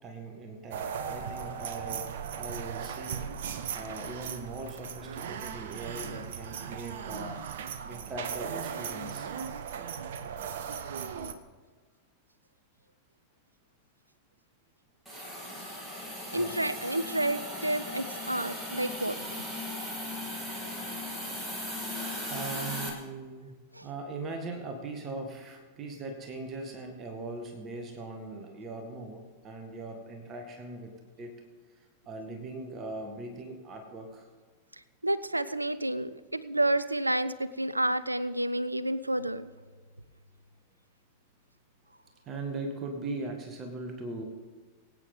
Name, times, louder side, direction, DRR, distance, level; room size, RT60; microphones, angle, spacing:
voice 1, 0.0-3.3 3.7-7.5 7.9-9.3 16.3-16.6 22.3-23.5 23.8-30.9 31.2-31.4 31.7-34.3 42.3-44.2, right 2 dB, 30° right, 4 dB, 1.9 m, -40 dB
sound 1, 0.7-11.3, right 7 dB, 55° right, 0.9 m, -37 dB
Hiss, 15.1-22.9, left 1 dB, 10° right, 3.2 m, -37 dB
voice 2, 16.3-19.5 23.7-23.9 35.0-39.5, right 1 dB, 85° right, 16 dB, 0.5 m, -30 dB
23.0 x 9.1 x 3.9 m, 1.4 s
figure-of-eight pair, 90°, 0 cm